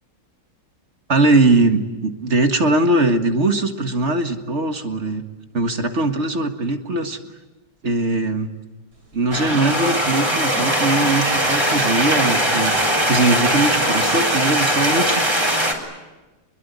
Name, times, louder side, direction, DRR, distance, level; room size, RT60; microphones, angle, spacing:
voice 1, 1.1-5.2 5.5-7.2 7.8-8.5 9.1-15.2, right 2 dB, 45° right, 6 dB, 2.0 m, -20 dB
sound 1, 9.0-14.1, right 2 dB, 65° right, 4.8 m, -35 dB
sound 2, 9.3-15.7, equal, 15° right, 3.9 m, -20 dB
25.5 x 22.0 x 9.6 m, 1.1 s
omnidirectional pair, 1.8 m